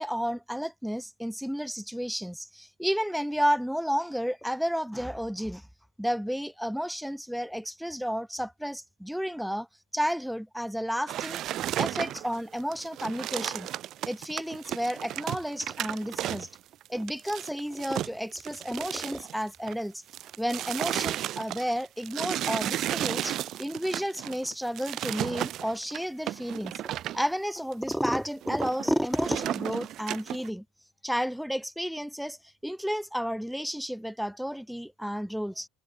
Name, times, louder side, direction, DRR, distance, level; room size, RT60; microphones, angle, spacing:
voice 1, 0.0-5.7 6.0-9.7 9.9-11.4 11.8-13.7 14.0-16.5 16.9-20.0 20.4-26.7 27.1-30.6 31.0-32.4 32.6-35.7, equal, ahead, 0.5 m, -31 dB
sound 1, 11.1-19.8 20.1-27.2 27.7-27.9 28.2-30.5, right 13 dB, 55° right, 1.8 m, -34 dB
hypercardioid pair, 85°, 0 cm